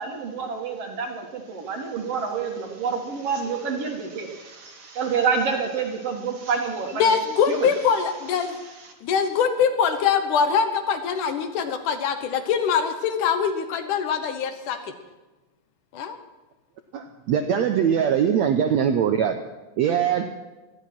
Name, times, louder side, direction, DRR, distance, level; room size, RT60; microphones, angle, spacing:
voice 1, 0.0-7.2 7.5-7.7 8.8-8.9, right 5 dB, 50° right, 3 dB, 2.3 m, -28 dB
voice 2, 7.0-8.6 9.0-14.8 15.9-16.2, left 6 dB, 70° left, 8 dB, 2.5 m, -23 dB
voice 3, 16.9-19.4 19.8-20.3, right 8 dB, 75° right, 6 dB, 1.7 m, -22 dB
18.0 x 13.0 x 6.0 m, 1.2 s
omnidirectional pair, 4.0 m